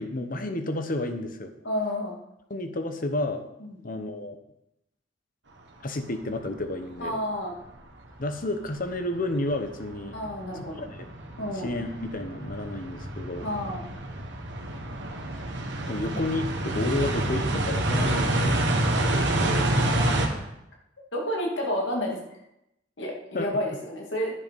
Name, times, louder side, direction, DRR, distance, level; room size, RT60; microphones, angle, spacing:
voice 1, 0.0-1.5 2.5-3.4 3.8-4.4 5.8-7.2 8.2-10.2 10.5-11.1 11.5-13.5 15.8-19.7 23.3-23.6, left 2 dB, 45° left, 7 dB, 1.0 m, -31 dB
voice 2, 1.6-2.1 3.6-3.8 7.0-7.5 10.1-10.9 11.4-11.7 13.4-13.8 19.7-20.5 21.1-22.2 23.0-24.3, left 1 dB, 70° left, -1 dB, 2.4 m, -30 dB
sound 1, 6.2-6.3 7.0-7.1 7.6-8.2 8.6-20.3, right 1 dB, 65° right, 1.5 m, -28 dB
10.0 x 8.0 x 5.4 m, 0.84 s
head